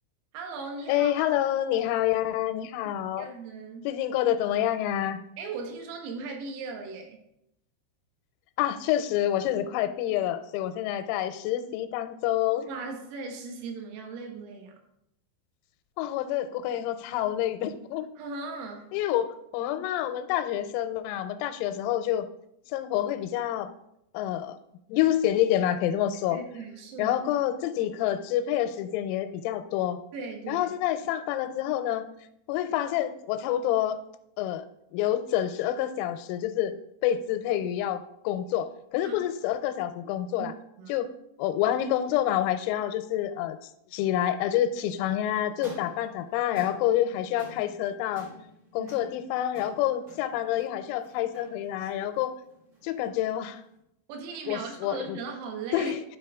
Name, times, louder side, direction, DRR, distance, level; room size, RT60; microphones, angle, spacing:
voice 1, 0.3-1.3 3.2-3.9 5.4-7.2 12.7-14.8 18.2-18.9 26.3-27.2 30.1-30.7 39.1-39.2 40.4-40.9 48.8-49.0 51.8-52.1 54.1-55.9, right 4 dB, 85° right, 3 dB, 4.0 m, -38 dB
voice 2, 0.9-3.3 3.8-5.2 8.6-12.7 16.0-18.1 18.9-22.3 22.7-23.7 24.1-24.6 24.9-26.4 27.0-30.0 30.5-32.1 32.5-34.0 34.4-34.6 34.9-40.5 40.9-41.1 41.4-43.6 43.9-48.3 48.7-52.3 52.8-53.6 54.5-55.2 55.7-56.0, left 12 dB, 85° left, 10 dB, 3.3 m, -28 dB
sound 1, 45.5-53.8, equal, 50° right, 1.3 m, -49 dB
11.5 x 5.3 x 3.5 m, 0.80 s
omnidirectional pair, 6.0 m